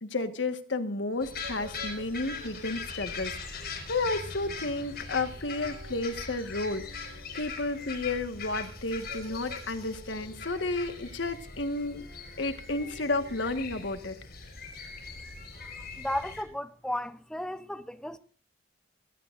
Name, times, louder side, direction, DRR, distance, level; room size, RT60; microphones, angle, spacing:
voice 1, 0.0-12.1 12.4-14.2, left 2 dB, 80° left, 1.5 m, -32 dB
sound 1, 1.2-16.4, left 4 dB, 55° left, 5.0 m, -41 dB
sound 2, 1.2-3.0 4.3-5.1 5.4-6.3 6.7-7.9 8.9-10.7 11.8-13.5, right 2 dB, 85° right, 1.3 m, -51 dB
voice 2, 15.6-18.2, left 1 dB, 5° left, 0.7 m, -35 dB
24.5 x 17.0 x 2.6 m
head